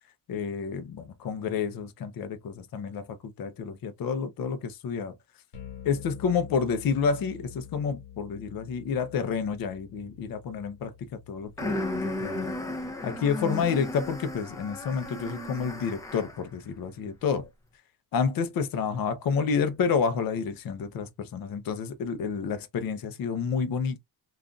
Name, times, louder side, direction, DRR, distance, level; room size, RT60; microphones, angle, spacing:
voice 1, 0.3-5.1 5.8-12.5 13.0-17.5 18.1-24.0, left 6 dB, 50° left, 0.6 m, -29 dB
sound 1, 5.5-15.6, left 9 dB, 85° left, 1.2 m, -49 dB
sound 2, 11.6-16.5, left 1 dB, 10° left, 0.5 m, -34 dB
3.7 x 2.4 x 2.3 m
wide cardioid pair, 170°, 44 cm